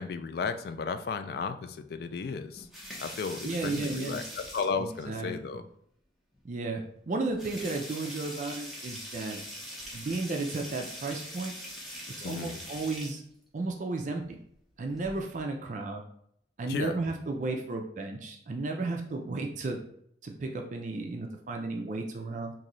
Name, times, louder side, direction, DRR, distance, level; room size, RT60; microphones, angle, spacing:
voice 1, 0.0-2.7 3.0-5.6 12.2-12.6 16.7-16.9, left 5 dB, 55° left, 8 dB, 0.3 m, -34 dB
sound 1, 2.5-5.0 6.3-6.4 6.8-6.9 7.3-13.2 14.8-15.4, equal, ahead, 0.8 m, -42 dB
voice 2, 3.4-4.2 4.8-5.3 6.4-9.4 9.9-11.5 12.2-13.2 13.5-14.4 14.8-16.0 16.6-19.8 20.2-22.5, right 3 dB, 40° right, 2 dB, 0.4 m, -33 dB
3.0 x 2.6 x 3.8 m, 0.69 s
head